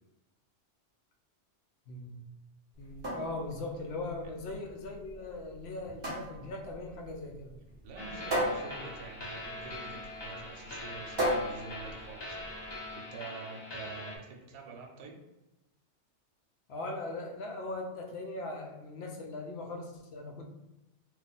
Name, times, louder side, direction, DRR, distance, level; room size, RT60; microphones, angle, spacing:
voice 1, 1.9-2.2 2.8-7.5 16.7-20.4, left 2 dB, 70° left, 1 dB, 0.8 m, -40 dB
sound 1, 2.8-12.8, equal, 25° right, 0.7 m, -37 dB
voice 2, 7.8-12.5 12.9-15.1, right 4 dB, 70° right, 1 dB, 0.8 m, -47 dB
sound 2, 8.0-14.2, left 2 dB, 35° left, 0.4 m, -42 dB
2.4 x 2.3 x 4.0 m, 0.98 s
omnidirectional pair, 1.2 m